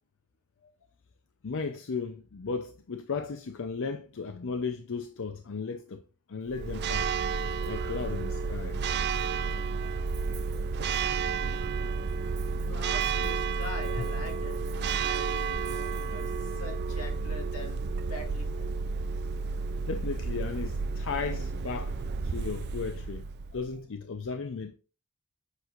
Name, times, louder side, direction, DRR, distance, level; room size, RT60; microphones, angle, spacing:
voice 1, 1.4-6.0 6.3-8.8 11.6-11.9 12.5-12.8 14.0-14.1 19.9-23.2 23.5-24.8, left 5 dB, 60° left, 0.6 m, -36 dB
Church bell, 6.5-23.7, right 5 dB, 45° right, 0.4 m, -31 dB
voice 2, 12.7-17.8 18.1-18.6, left 2 dB, 85° left, 2.2 m, -43 dB
8.0 x 6.2 x 2.5 m
head